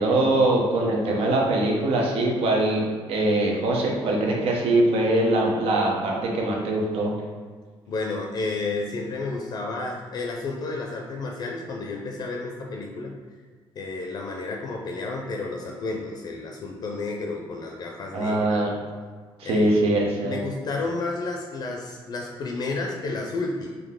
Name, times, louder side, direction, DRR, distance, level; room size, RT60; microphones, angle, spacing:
voice 1, 0.0-7.1 18.1-18.7 19.4-20.4, right 2 dB, 85° right, -1 dB, 0.8 m, -22 dB
voice 2, 7.9-13.2 13.8-18.6 19.4-19.9 20.2-23.7, left 3 dB, 45° left, 0 dB, 0.4 m, -31 dB
3.8 x 2.8 x 3.6 m, 1.5 s
cardioid pair, 165°, 10 cm